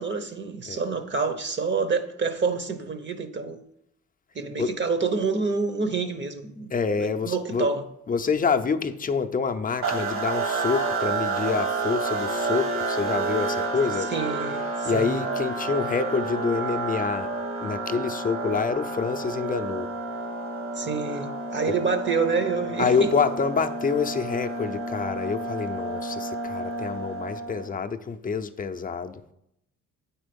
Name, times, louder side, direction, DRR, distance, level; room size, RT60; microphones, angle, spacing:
voice 1, 0.0-3.6 4.3-6.7 7.0-7.8 14.1-15.2 20.8-23.1, right 4 dB, 40° right, 0.8 m, -27 dB
voice 2, 6.7-7.7 8.1-14.1 14.8-17.3 17.6-19.9 22.8-29.2, left 5 dB, 30° left, 0.5 m, -27 dB
sound 1, 9.8-27.7, right 3 dB, 65° right, 1.6 m, -30 dB
8.5 x 4.5 x 5.2 m
cardioid pair, 90°, 30 cm